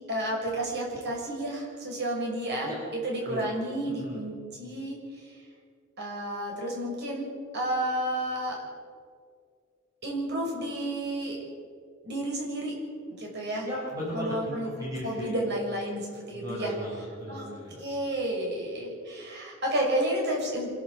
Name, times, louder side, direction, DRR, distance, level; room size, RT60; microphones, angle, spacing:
voice 1, 0.1-5.0 6.0-7.3 7.5-8.6 10.0-11.4 12.0-12.7 13.1-13.7 14.1-14.7 15.0-16.7 17.3-17.5 17.8-20.7, right 1 dB, 55° right, -2 dB, 6.7 m, -31 dB
voice 2, 3.8-4.2 13.6-15.3 16.3-17.8, left 1 dB, 15° right, -7 dB, 5.9 m, -36 dB
26.0 x 12.5 x 8.0 m, 2.1 s
head